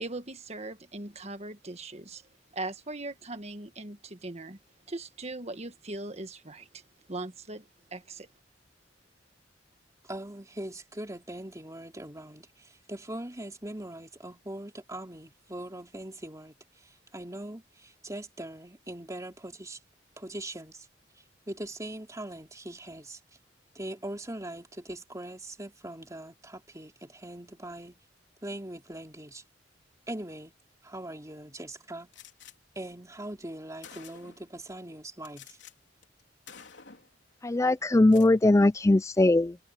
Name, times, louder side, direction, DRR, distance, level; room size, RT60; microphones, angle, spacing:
voice 1, 0.0-2.3 2.5-4.6 4.9-6.8 7.1-8.3, right 2 dB, 35° right, 1.6 m, -39 dB
voice 2, 10.0-16.5 16.8-19.8 20.2-20.9 21.5-23.2 23.8-28.0 28.4-29.4 30.1-30.5 30.8-32.1 32.8-35.6, right 1 dB, 20° right, 3.3 m, -41 dB
Gunshot gunfire, 32.1-32.5 33.4-33.5 33.8-34.5 35.2-35.7 36.0-36.2 36.5-37.1 37.9-38.3, left 7 dB, 70° left, 3.8 m, -49 dB
voice 3, 37.4-39.6, left 2 dB, 15° left, 0.4 m, -21 dB
head